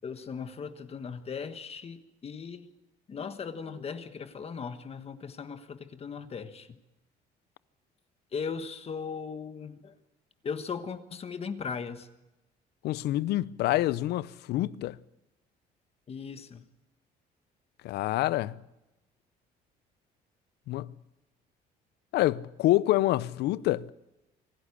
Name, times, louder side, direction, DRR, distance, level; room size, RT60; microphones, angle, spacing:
voice 1, 0.0-2.7 3.1-6.8 8.3-9.9 10.4-12.1 16.1-16.6, left 6 dB, 35° left, 1.4 m, -38 dB
voice 2, 12.8-15.0 17.8-18.5 20.7-20.9 22.1-23.9, left 16 dB, 75° left, 0.6 m, -27 dB
25.0 x 11.5 x 9.8 m
cardioid pair, 110°, 17 cm